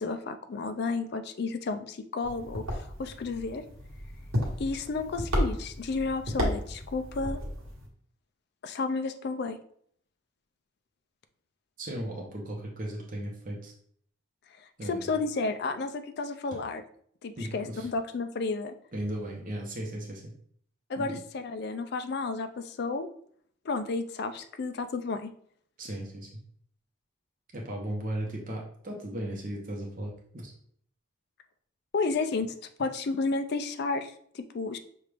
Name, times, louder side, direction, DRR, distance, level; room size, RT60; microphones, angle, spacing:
voice 1, 0.0-3.6 4.6-7.4 8.6-9.6 14.8-16.8 17.2-18.7 20.9-23.1 23.6-25.3 31.9-32.5 32.8-34.8, left 3 dB, 50° left, 9 dB, 0.4 m, -32 dB
sound 1, 2.2-7.8, equal, 80° right, 1.2 m, -33 dB
voice 2, 11.8-13.7 14.8-15.1 17.4-17.9 18.9-20.3 21.0-21.2 25.8-26.3 27.5-30.5, right 1 dB, 40° right, -1 dB, 0.8 m, -36 dB
6.0 x 2.4 x 3.3 m, 0.62 s
head